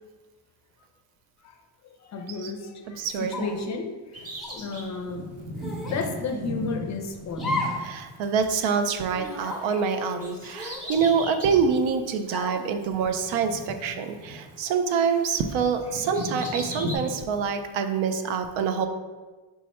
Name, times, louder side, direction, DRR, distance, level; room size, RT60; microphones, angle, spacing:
voice 1, 2.0-4.3 4.5-5.3 5.9-7.6 10.4-10.6, left 4 dB, 40° left, 4 dB, 0.5 m, -33 dB
voice 2, 2.9-3.4 7.8-18.9, right 6 dB, 75° right, 7 dB, 0.6 m, -26 dB
sound 1, 3.3-3.7 4.4-4.6 5.6-6.0 7.3-7.9 8.2-8.3 9.2-9.6 10.5-11.4 12.3-12.7, left 1 dB, ahead, 0.8 m, -33 dB
Bird vocalization bird call bird song, 4.1-8.8 9.0-11.8 12.2-12.3 13.2-14.7 14.9-17.0, equal, 30° right, 0.9 m, -37 dB
4.7 x 2.1 x 4.2 m, 1.3 s
cardioid pair, 100°, 47 cm